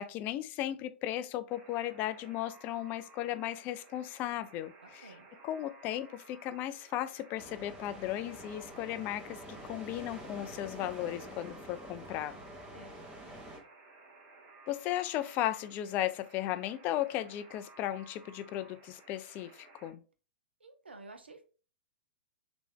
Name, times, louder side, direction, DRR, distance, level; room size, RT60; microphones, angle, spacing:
voice 1, 0.0-5.1 5.4-12.4 14.7-20.0, left 13 dB, 35° left, 0.3 m, -36 dB
Alarm, 1.5-19.9, right 3 dB, 35° right, 1.1 m, -57 dB
voice 2, 4.8-5.3 12.7-13.2 20.6-21.4, right 3 dB, 85° right, 0.7 m, -52 dB
sound 1, 7.4-13.6, right 1 dB, 15° right, 1.4 m, -47 dB
3.3 x 2.9 x 3.5 m
figure-of-eight pair, 110°, 6 cm